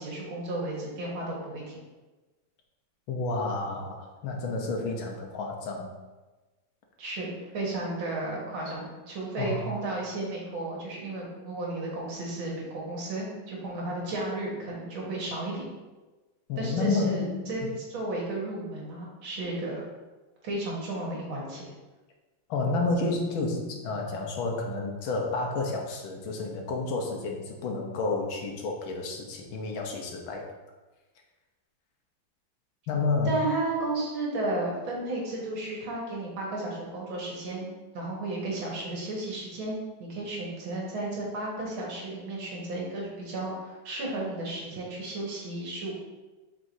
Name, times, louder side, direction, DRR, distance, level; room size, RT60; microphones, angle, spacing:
voice 1, 0.0-1.8 7.0-15.7 16.6-17.6 17.9-19.8 20.4-21.7 33.3-45.9, right 2 dB, 80° right, -3 dB, 2.4 m, -33 dB
voice 2, 3.1-6.0 9.4-9.6 16.5-17.7 22.5-30.4 32.9-33.5, left 3 dB, 80° left, 1 dB, 1.7 m, -30 dB
7.6 x 5.1 x 2.7 m, 1.2 s
omnidirectional pair, 2.2 m